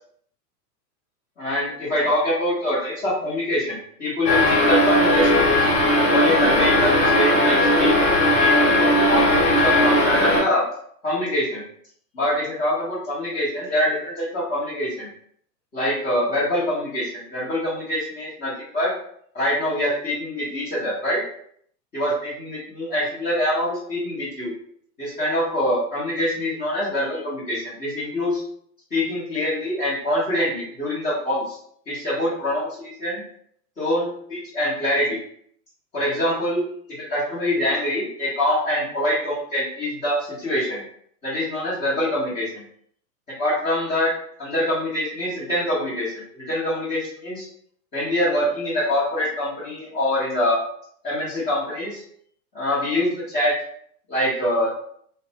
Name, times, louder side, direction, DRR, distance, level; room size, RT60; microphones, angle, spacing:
voice 1, 1.4-5.7 6.1-8.7 9.1-10.6 11.0-11.6 12.1-15.1 15.7-18.9 19.3-21.2 21.9-24.5 25.0-28.4 28.9-31.6 31.9-33.2 33.8-35.2 35.9-36.7 37.0-40.8 41.2-42.6 43.3-44.1 44.4-47.5 47.9-50.6 51.0-52.0 52.5-53.5 54.1-54.7, left 1 dB, 15° left, -11 dB, 0.8 m, -24 dB
sound 1, 4.3-10.4, left 1 dB, 75° left, 1.0 m, -18 dB
2.6 x 2.1 x 2.7 m, 0.64 s
supercardioid pair, 145°, 48 cm